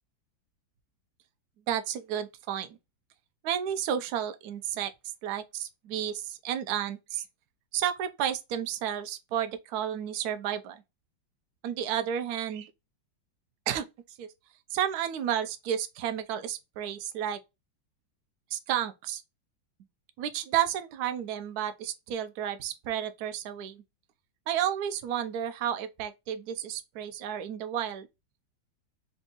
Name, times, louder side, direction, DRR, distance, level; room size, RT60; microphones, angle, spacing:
voice 1, 1.7-2.8 3.4-4.9 5.2-7.2 7.7-10.8 11.6-12.7 13.7-13.9 14.2-14.3 14.7-17.4 18.5-19.2 20.2-23.8 24.5-28.1, right 10 dB, 70° right, 0.9 m, -32 dB
3.5 x 2.6 x 3.8 m
omnidirectional pair, 2.1 m